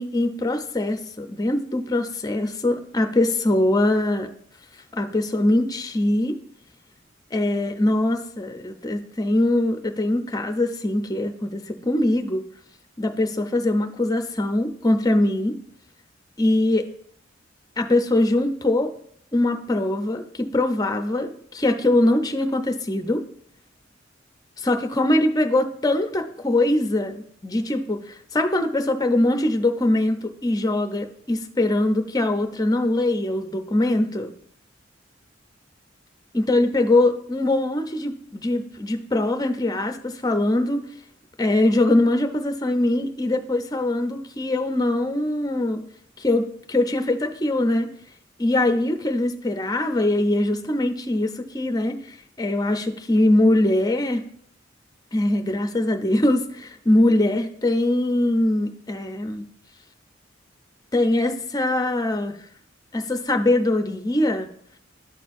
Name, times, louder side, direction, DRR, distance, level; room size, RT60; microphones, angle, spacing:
voice 1, 0.0-4.3 4.9-6.4 7.3-12.5 13.0-15.5 16.4-16.9 17.8-18.9 19.3-23.2 24.6-34.3 36.3-40.8 41.4-45.8 46.2-47.9 48.4-52.0 52.4-54.2 55.1-59.4 60.9-62.4 62.9-64.5, left 1 dB, 20° left, 6 dB, 0.5 m, -22 dB
12.0 x 4.4 x 2.5 m, 0.65 s
head